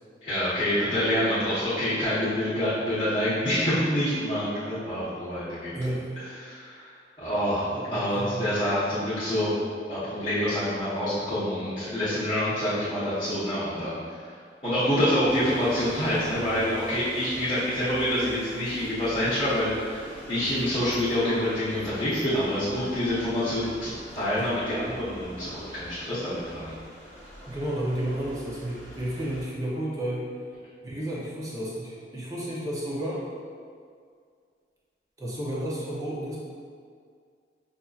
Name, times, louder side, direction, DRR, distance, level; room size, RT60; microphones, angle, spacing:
voice 1, 0.2-5.7 6.4-6.9 7.2-9.5 9.9-14.0 14.6-26.7, equal, 30° left, -15 dB, 0.9 m, -27 dB
voice 2, 5.7-6.1 7.9-8.5 27.5-30.3 30.8-33.2 35.2-36.4, right 1 dB, 20° right, -6 dB, 0.7 m, -32 dB
sound 1, 15.3-29.4, equal, 80° right, 1.4 m, -44 dB
5.6 x 2.7 x 2.4 m, 2.1 s
head